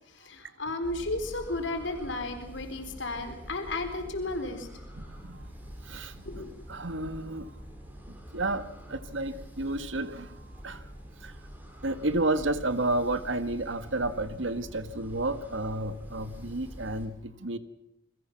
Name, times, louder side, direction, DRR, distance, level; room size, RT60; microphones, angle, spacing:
voice 1, 0.1-4.7 6.3-6.5, left 2 dB, 70° left, 7 dB, 4.0 m, -34 dB
sound 1, 0.8-17.1, equal, 10° right, 5.2 m, -46 dB
voice 2, 5.0-5.4 5.9-6.2 6.7-7.5 8.1-10.4 10.6-10.8 11.2-11.3 11.8-17.6, right 2 dB, 80° right, 11 dB, 1.8 m, -31 dB
28.5 x 23.0 x 6.0 m, 0.85 s
head